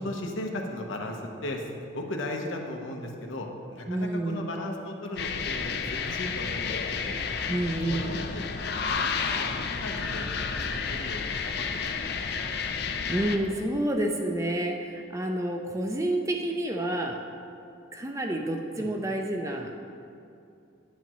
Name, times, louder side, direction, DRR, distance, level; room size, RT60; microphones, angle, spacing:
voice 1, 0.0-7.2 7.9-8.4 8.8-12.2 18.7-18.9, left 1 dB, 85° left, 1 dB, 1.0 m, -37 dB
voice 2, 3.9-4.5 7.5-8.2 13.1-17.2 17.9-19.7, right 1 dB, 15° right, 3 dB, 0.5 m, -29 dB
sound 1, 5.2-13.4, left 5 dB, 55° left, 0.5 m, -31 dB
10.0 x 8.3 x 3.0 m, 2.6 s
head